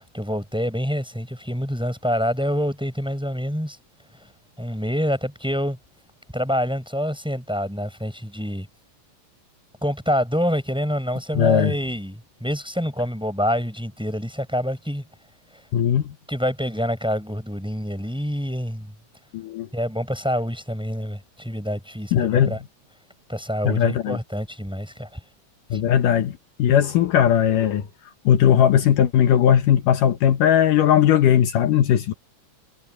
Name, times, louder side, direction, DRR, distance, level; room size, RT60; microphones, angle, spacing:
voice 1, 0.0-3.8 4.1-4.3 4.6-5.8 6.3-8.7 9.8-15.0 16.3-18.9 19.7-22.6 23.3-25.2 25.7-25.8, equal, ahead, 6.9 m, -26 dB
voice 2, 11.4-11.7 15.7-16.1 19.3-19.7 22.1-22.6 23.6-24.2 25.7-27.9 28.3-32.1, left 9 dB, 75° left, 2.7 m, -18 dB
omnidirectional pair, 3.9 m